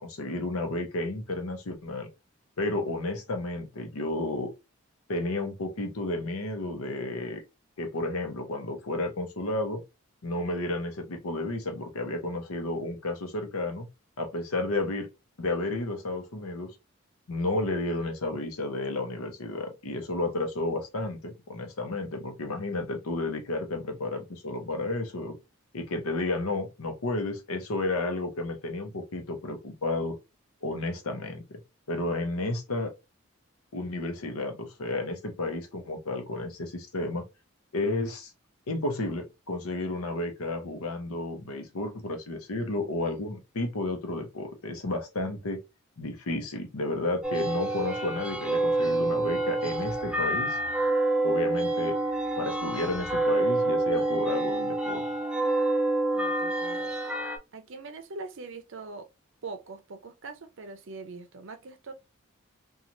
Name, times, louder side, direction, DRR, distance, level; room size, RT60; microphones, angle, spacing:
voice 1, 0.0-2.1 2.6-4.5 5.1-7.4 7.8-9.8 10.2-13.9 14.2-15.1 15.4-16.7 17.3-25.3 25.7-30.2 30.6-31.6 31.9-32.9 33.7-37.2 37.7-38.3 38.7-45.6 46.0-50.6 51.2-52.0 52.4-55.0, left 2 dB, 85° left, 0.7 m, -32 dB
sound 1, 47.2-57.4, right 2 dB, 5° right, 0.3 m, -27 dB
voice 2, 56.1-56.9 57.5-59.1 59.4-61.9, right 3 dB, 60° right, 0.5 m, -42 dB
3.0 x 2.3 x 2.6 m
head